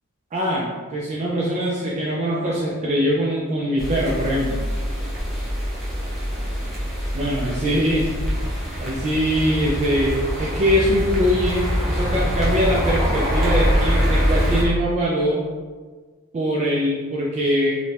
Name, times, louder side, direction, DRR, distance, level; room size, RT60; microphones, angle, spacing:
voice 1, 0.3-4.6 7.1-8.1 8.8-15.5 16.3-17.8, equal, 30° right, -5 dB, 0.3 m, -22 dB
sound 1, 3.8-14.6, equal, ahead, 0.7 m, -24 dB
2.5 x 2.1 x 3.2 m, 1.4 s
head